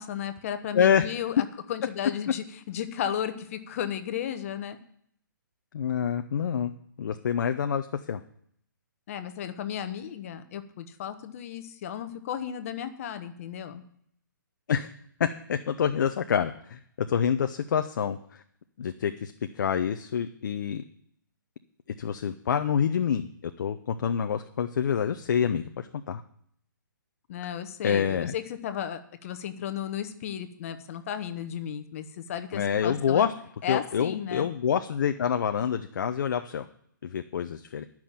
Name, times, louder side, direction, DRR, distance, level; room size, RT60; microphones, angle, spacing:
voice 1, 0.0-4.8 9.1-13.8 27.3-33.3 33.6-34.5, left 9 dB, 40° left, 10 dB, 1.1 m, -34 dB
voice 2, 0.7-1.0 5.7-6.7 7.0-8.2 14.7-14.9 15.2-18.4 18.8-20.8 22.0-26.2 27.8-28.4 32.5-33.3 33.7-36.7 37.0-37.9, left 8 dB, 60° left, 8 dB, 0.7 m, -27 dB
11.5 x 6.1 x 8.8 m, 0.68 s
hypercardioid pair, 150°, 11 cm